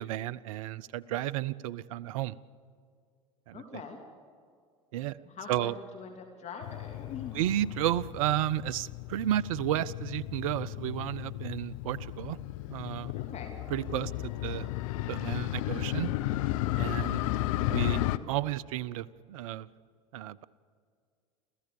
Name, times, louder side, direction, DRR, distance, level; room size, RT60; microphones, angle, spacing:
voice 1, 0.0-2.4 3.5-3.6 4.9-5.2 5.5-5.7 7.3-12.4 12.7-13.1 13.7-14.7 15.1-16.1 16.8-17.2 17.7-19.7 20.1-20.4, right 13 dB, 70° right, 20 dB, 0.7 m, -32 dB
voice 2, 3.5-4.0 5.2-7.4 13.1-13.5 16.9-17.2, left 5 dB, 40° left, 3 dB, 2.9 m, -43 dB
Motorcycle, 6.6-18.2, left 16 dB, 70° left, 0.8 m, -34 dB
28.0 x 15.0 x 7.0 m, 2.2 s
hypercardioid pair, 80°, 18 cm